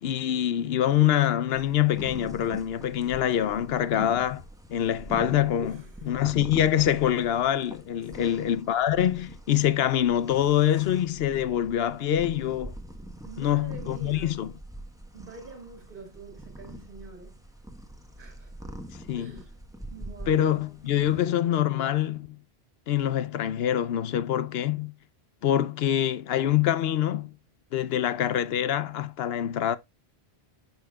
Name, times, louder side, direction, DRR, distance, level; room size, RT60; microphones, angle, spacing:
voice 1, 0.0-4.4 4.7-5.8 6.1-12.7 13.4-14.5 19.1-19.3 20.3-22.3 22.9-24.9 25.4-27.3 27.7-29.8, left 11 dB, 75° left, 0.8 m, -25 dB
sound 1, 1.5-21.2, right 1 dB, 5° right, 1.1 m, -44 dB
voice 2, 5.5-6.1 8.0-8.5 13.2-14.4 15.1-17.4 18.2-18.7 19.1-19.6 19.9-20.5 20.9-21.5, right 3 dB, 55° right, 2.2 m, -45 dB
11.5 x 5.7 x 2.3 m
omnidirectional pair, 1.1 m